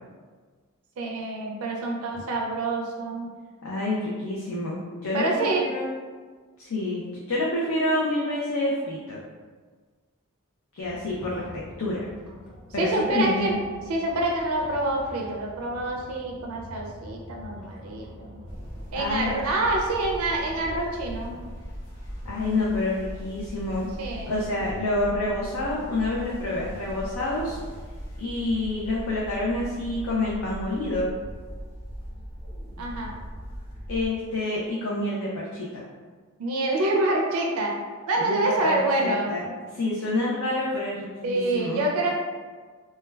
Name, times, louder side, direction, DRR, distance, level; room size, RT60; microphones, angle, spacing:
voice 1, 1.0-3.3 5.1-5.7 12.8-13.6 13.9-18.3 18.9-21.3 24.0-24.4 32.8-33.1 36.4-37.8 38.1-39.3 41.2-42.1, right 2 dB, 75° right, 0 dB, 0.4 m, -26 dB
voice 2, 3.6-5.9 6.6-9.2 10.7-12.1 12.7-13.6 18.9-19.4 22.2-23.9 24.3-27.6 28.2-31.1 33.9-35.8 38.2-39.5 39.7-41.8, left 2 dB, 75° left, -5 dB, 0.4 m, -28 dB
sound 1, 10.8-21.4, equal, 5° right, 0.6 m, -45 dB
sound 2, 18.5-34.1, equal, 55° left, 0.9 m, -39 dB
2.2 x 2.2 x 3.2 m, 1.5 s
head